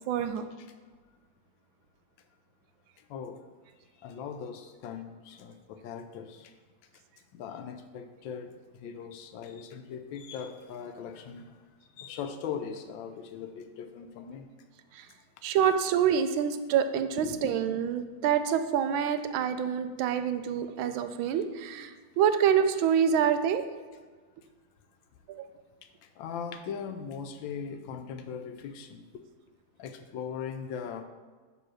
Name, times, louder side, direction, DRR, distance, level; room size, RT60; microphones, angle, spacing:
voice 1, 0.1-0.4 14.9-15.0 15.4-21.9 22.2-23.6 25.3-25.5, right 8 dB, 80° right, 9 dB, 1.4 m, -26 dB
voice 2, 4.0-6.5 7.3-11.5 12.0-14.5 17.2-17.6 26.2-29.0 29.8-31.0, left 7 dB, 75° left, 8 dB, 1.3 m, -39 dB
6.9 x 3.8 x 6.2 m, 1.4 s
omnidirectional pair, 2.2 m